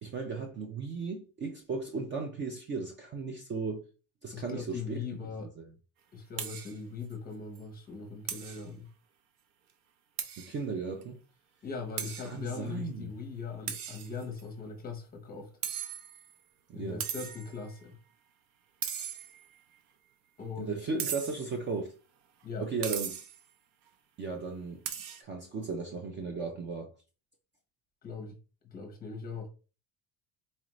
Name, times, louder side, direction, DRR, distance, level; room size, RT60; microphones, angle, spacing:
voice 1, 0.0-3.8 4.2-5.0 5.6-5.7 10.4-11.2 12.0-13.1 16.7-17.0 20.6-21.9 22.6-23.2 24.2-24.8 25.2-26.9, right 4 dB, 30° right, 0.4 m, -36 dB
voice 2, 4.3-5.5 6.1-8.9 11.6-15.5 16.7-17.9 20.4-20.9 22.4-22.7 28.0-28.4 28.7-29.5, left 5 dB, 25° left, 0.8 m, -40 dB
sound 1, 6.4-6.8 7.1-7.2 7.5-7.6 8.3-8.6 10.2-10.6 11.0-11.1 12.0-12.3 13.7-14.4 15.6-16.3 17.0-17.5 18.8-19.6 21.0-21.5 22.8-23.4 24.8-25.2, right 8 dB, 85° right, 0.7 m, -37 dB
4.1 x 2.5 x 3.0 m
cardioid pair, 165°, 39 cm